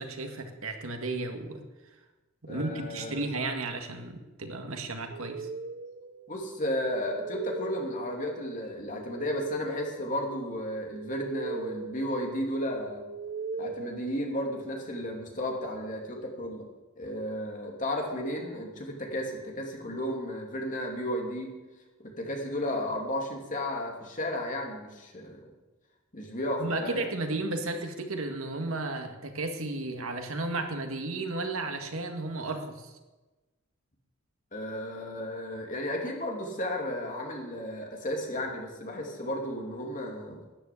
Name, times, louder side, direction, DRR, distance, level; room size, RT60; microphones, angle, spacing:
voice 1, 0.0-1.6 2.4-5.5 26.6-32.9, right 2 dB, 80° right, 4 dB, 1.9 m, -33 dB
voice 2, 2.5-3.2 6.3-13.0 13.6-16.7 17.0-21.5 22.0-25.4 26.1-27.1 34.5-40.4, left 1 dB, 40° left, 1 dB, 2.8 m, -33 dB
sound 1, 5.1-14.8, right 4 dB, 45° right, 0.6 m, -40 dB
12.5 x 9.6 x 8.5 m, 1.2 s
head